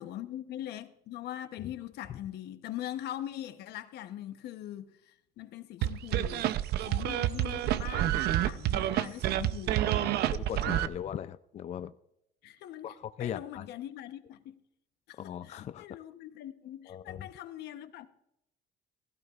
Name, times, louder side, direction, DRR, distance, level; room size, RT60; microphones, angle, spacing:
voice 1, 0.0-6.5 6.9-10.2 12.4-14.6 15.1-18.1, left 12 dB, 80° left, 1.0 m, -42 dB
sound 1, 5.8-10.9, right 13 dB, 75° right, 0.6 m, -28 dB
voice 2, 10.3-11.9 12.8-13.6 15.2-15.9 16.9-17.3, left 9 dB, 40° left, 0.4 m, -39 dB
16.5 x 14.5 x 2.4 m
cardioid pair, 110°, 17 cm